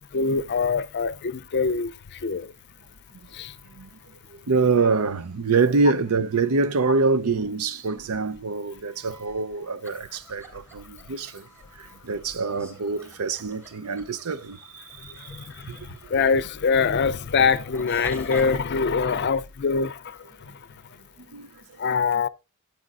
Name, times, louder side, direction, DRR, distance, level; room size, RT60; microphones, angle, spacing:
voice 1, 0.1-2.5 3.3-3.5 15.4-20.2 21.8-22.3, left 5 dB, 50° left, 0.5 m, -24 dB
voice 2, 4.5-11.4 11.8-14.8 15.2-15.3 15.7-15.8 21.3-21.5, right 4 dB, 80° right, 0.6 m, -25 dB
sound 1, 9.8-18.6, right 2 dB, 15° right, 3.5 m, -46 dB
14.0 x 8.6 x 2.4 m
head